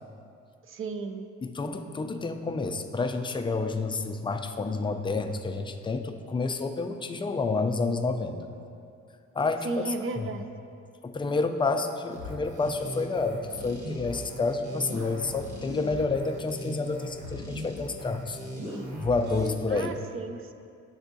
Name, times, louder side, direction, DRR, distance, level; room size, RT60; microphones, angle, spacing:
voice 1, 0.6-1.3 9.6-10.5 18.7-19.0 19.7-20.5, right 3 dB, 45° right, 8 dB, 0.5 m, -35 dB
voice 2, 1.4-8.4 9.3-10.3 11.0-18.4 19.0-19.9, left 3 dB, 15° left, 6 dB, 0.3 m, -29 dB
sound 1, 12.1-19.5, left 1 dB, 70° right, 1.3 m, -38 dB
10.5 x 3.5 x 2.6 m, 2.4 s
cardioid pair, 90°, 30 cm